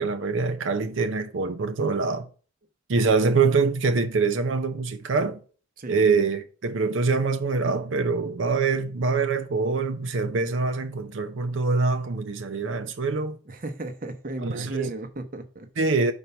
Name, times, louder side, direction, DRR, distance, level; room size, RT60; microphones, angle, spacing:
voice 1, 0.0-2.3 2.9-5.4 5.9-13.4 14.4-14.9 15.8-16.1, right 4 dB, 90° right, 0.6 m, -24 dB
voice 2, 13.5-15.7, right 2 dB, 45° right, 0.8 m, -35 dB
5.5 x 4.5 x 5.5 m
head